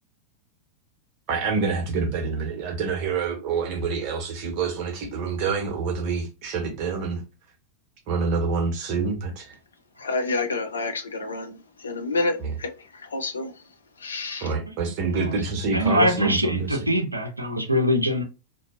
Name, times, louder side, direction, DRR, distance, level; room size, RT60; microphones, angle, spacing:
voice 1, 1.3-7.2 8.1-9.6 12.4-12.6 14.4-16.9, right 4 dB, 45° right, 0.9 m, -27 dB
voice 2, 10.0-11.5 11.8-12.3 12.6-12.7 13.1-13.5 14.0-14.5, left 3 dB, 70° left, 0.5 m, -28 dB
voice 3, 14.7-15.4 15.7-18.2, equal, 85° right, 0.5 m, -24 dB
2.7 x 2.2 x 2.3 m
figure-of-eight pair, 90°, 0 cm